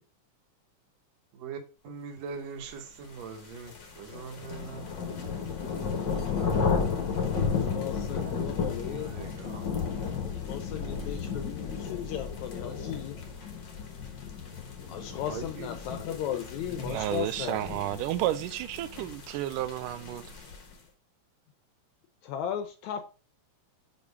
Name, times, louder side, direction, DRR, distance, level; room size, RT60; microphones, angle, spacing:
voice 1, 1.3-4.9 7.1-7.3 7.6-7.8 8.1-9.7 15.3-15.7, right 5 dB, 65° right, 2.2 m, -42 dB
sound 1, 3.2-20.7, left 5 dB, 50° left, 1.4 m, -33 dB
voice 2, 7.4-9.1 10.2-13.2 14.9-17.6 22.2-23.0, left 10 dB, 80° left, 1.8 m, -36 dB
voice 3, 16.9-20.2, right 14 dB, 90° right, 2.2 m, -31 dB
5.6 x 5.1 x 4.6 m
omnidirectional pair, 3.7 m